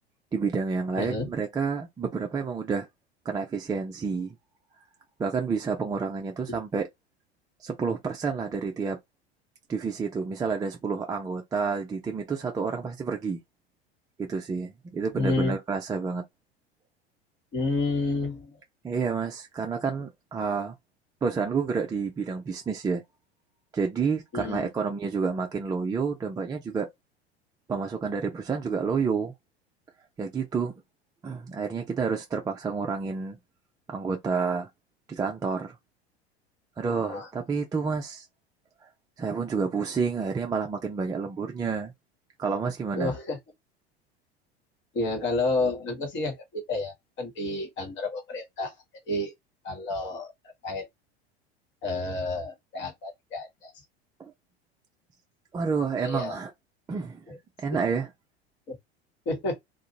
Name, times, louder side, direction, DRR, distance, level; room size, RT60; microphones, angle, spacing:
voice 1, 0.3-2.9 3.3-4.4 5.2-6.8 7.6-9.0 9.7-13.4 14.2-16.2 18.8-20.7 21.2-23.0 23.7-26.9 27.7-29.3 30.2-30.7 31.2-33.4 33.9-34.7 35.1-35.7 36.8-38.3 39.2-41.9 42.4-43.1 55.5-56.5 56.9-57.2 57.6-58.1, right 5 dB, 10° right, 0.4 m, -29 dB
voice 2, 1.0-1.3 6.5-6.6 15.1-15.6 17.5-18.6 24.3-24.7 37.1-37.3 42.9-43.4 44.9-48.7 49.1-49.3 49.6-50.3 50.6-50.9 51.8-53.7 56.0-56.4 57.3-57.4 57.7-57.8 58.7-58.8 59.2-59.6, left 2 dB, 35° left, 1.3 m, -30 dB
2.5 x 2.2 x 2.8 m
figure-of-eight pair, 80°, 32 cm